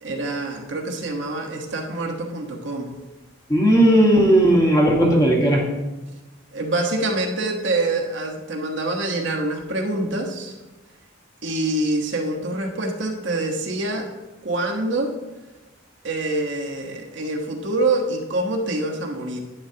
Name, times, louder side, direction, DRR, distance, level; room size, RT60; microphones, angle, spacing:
voice 1, 0.0-2.9 6.5-10.5 11.4-14.1 14.4-15.1 16.0-19.4, right 2 dB, 65° right, 2 dB, 1.3 m, -25 dB
voice 2, 3.5-5.6, right 1 dB, 20° left, -1 dB, 1.6 m, -16 dB
11.0 x 10.5 x 2.9 m, 1.1 s
head